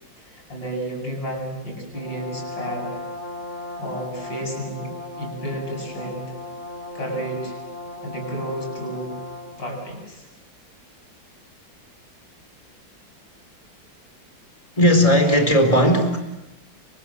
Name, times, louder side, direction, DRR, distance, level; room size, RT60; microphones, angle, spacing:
voice 1, 0.2-2.9 3.8-4.9 5.2-6.4 6.9-7.6 8.0-9.2 9.6-10.3, right 1 dB, 70° left, 1 dB, 8.9 m, -31 dB
Brass instrument, 1.9-9.7, left 2 dB, 35° left, 4.3 m, -36 dB
voice 2, 14.8-16.2, equal, 15° left, 6 dB, 4.4 m, -16 dB
30.0 x 25.5 x 7.9 m, 0.95 s
omnidirectional pair, 2.1 m